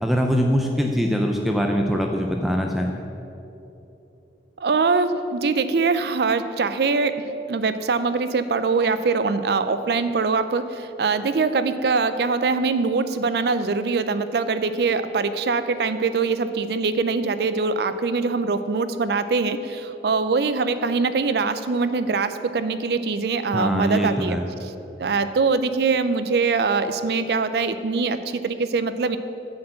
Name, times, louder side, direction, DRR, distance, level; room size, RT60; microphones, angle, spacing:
voice 1, 0.0-2.9 23.5-24.5, equal, ahead, 2 dB, 0.4 m, -22 dB
voice 2, 4.6-24.4 25.0-29.2, right 4 dB, 60° right, 12 dB, 0.4 m, -23 dB
9.4 x 4.5 x 7.6 m, 2.9 s
head